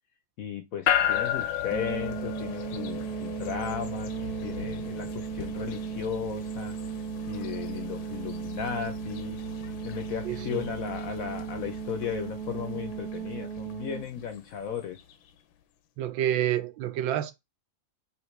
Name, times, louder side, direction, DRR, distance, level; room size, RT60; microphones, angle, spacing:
voice 1, 0.4-4.1 4.4-6.8 7.3-9.4 9.8-15.0, left 8 dB, 70° left, 0.8 m, -35 dB
sound 1, 0.9-15.1, left 10 dB, 90° left, 1.4 m, -35 dB
sound 2, 1.7-14.1, right 8 dB, 70° right, 1.0 m, -36 dB
voice 2, 10.2-10.7 16.0-17.3, right 11 dB, 90° right, 1.4 m, -28 dB
5.5 x 2.9 x 3.2 m
omnidirectional pair, 2.1 m